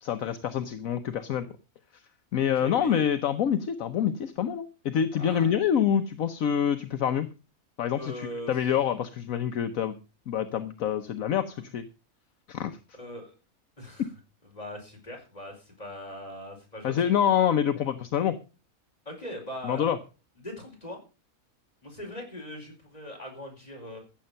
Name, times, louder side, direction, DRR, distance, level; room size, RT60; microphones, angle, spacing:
voice 1, 0.0-1.5 2.3-7.3 7.8-10.0 10.3-11.8 12.5-12.7 16.8-18.4 19.6-20.0, left 9 dB, 70° left, 10 dB, 1.2 m, -26 dB
voice 2, 2.6-3.1 5.2-5.5 8.0-8.5 13.0-13.3 13.8-14.1 14.4-17.1 19.0-19.9 20.4-21.0 21.8-24.0, left 1 dB, 25° left, 1 dB, 4.8 m, -40 dB
15.0 x 7.5 x 5.5 m, 0.33 s
omnidirectional pair, 1.5 m